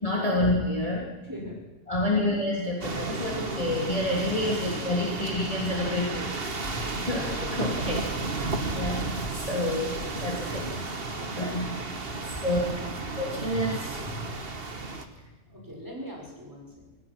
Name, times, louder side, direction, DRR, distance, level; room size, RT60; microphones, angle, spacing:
voice 1, 0.0-1.1 1.9-7.2 7.5-10.8 11.3-11.7 12.2-12.6 13.2-14.2, left 1 dB, 20° left, -3 dB, 3.4 m, -29 dB
voice 2, 1.2-1.6 2.1-2.2 4.4-4.5 6.9-7.2 11.2-11.8 12.4-13.0 15.5-16.9, equal, 10° right, -2 dB, 6.5 m, -42 dB
sound 1, 2.8-15.1, right 3 dB, 35° right, 1.8 m, -33 dB
26.0 x 18.5 x 6.2 m, 1.1 s
omnidirectional pair, 1.8 m